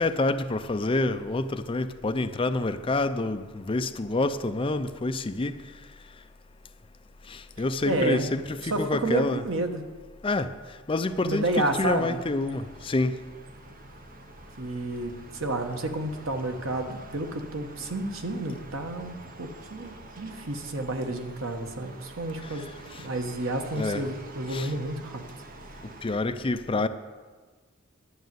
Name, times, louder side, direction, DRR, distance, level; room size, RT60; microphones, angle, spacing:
voice 1, 0.0-5.5 7.3-9.4 10.2-10.5 10.9-13.2 23.8-24.0 24.5-24.7 26.0-26.9, left 2 dB, 25° left, 0.5 m, -27 dB
voice 2, 7.8-8.3 8.6-9.8 11.3-12.2 14.6-22.7 23.0-25.2, right 2 dB, 85° right, 1.3 m, -30 dB
sound 1, 11.1-26.2, right 2 dB, 45° right, 0.9 m, -47 dB
11.5 x 6.4 x 9.3 m
head